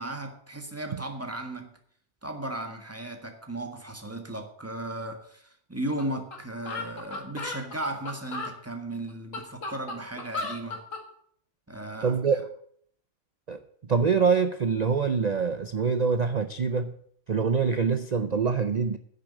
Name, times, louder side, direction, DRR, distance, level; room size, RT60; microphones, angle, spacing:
voice 1, 0.0-1.8 2.2-10.8 11.7-12.2, right 1 dB, 10° right, 1.6 m, -36 dB
sound 1, 6.0-6.1 6.3-6.4 6.7-8.5 9.1-11.0, left 3 dB, 65° left, 2.3 m, -35 dB
voice 2, 12.0-12.5 13.5-16.9 17.3-19.0, right 5 dB, 50° right, 0.5 m, -25 dB
10.0 x 6.7 x 8.7 m
omnidirectional pair, 1.4 m